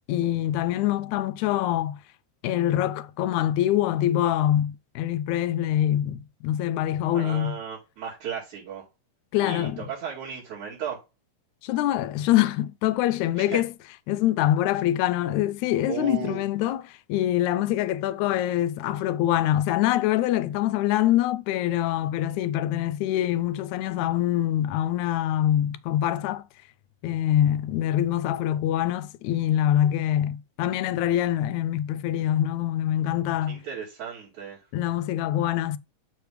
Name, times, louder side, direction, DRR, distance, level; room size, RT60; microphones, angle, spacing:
voice 1, 0.0-2.0 2.4-7.5 9.3-9.9 11.6-13.7 14.1-26.4 27.0-33.6 34.7-35.8, left 12 dB, 85° left, 1.9 m, -24 dB
voice 2, 7.1-8.9 9.4-11.0 13.4-13.6 15.9-16.4 33.5-34.6, right 7 dB, 80° right, 3.9 m, -35 dB
6.9 x 3.2 x 4.8 m
omnidirectional pair, 3.4 m